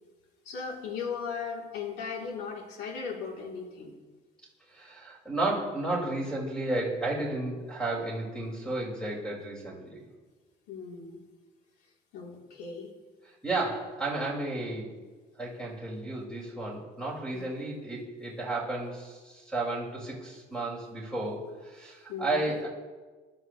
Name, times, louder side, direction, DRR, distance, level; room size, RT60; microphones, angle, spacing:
voice 1, 0.5-4.0 10.7-11.2 12.1-12.9 17.3-17.6 22.1-22.5, left 5 dB, 85° left, -1 dB, 3.7 m, -37 dB
voice 2, 4.7-10.1 13.4-14.9 15.4-22.7, right 2 dB, 5° left, -3 dB, 5.6 m, -33 dB
25.5 x 12.5 x 3.3 m, 1.3 s
cardioid pair, 110°, 17 cm